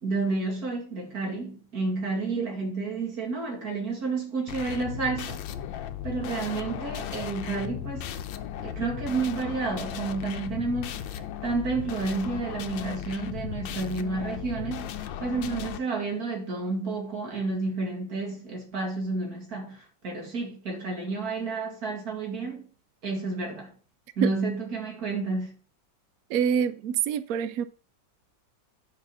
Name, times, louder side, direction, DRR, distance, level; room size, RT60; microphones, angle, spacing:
voice 1, 0.0-5.4 6.0-8.1 8.6-22.6 23.0-23.7 24.2-25.6, right 3 dB, 50° right, 2.7 m, -30 dB
sound 1, 4.5-15.8, left 10 dB, 80° left, 1.4 m, -36 dB
voice 2, 26.3-27.6, right 8 dB, 80° right, 0.8 m, -26 dB
9.3 x 5.2 x 5.5 m
omnidirectional pair, 2.1 m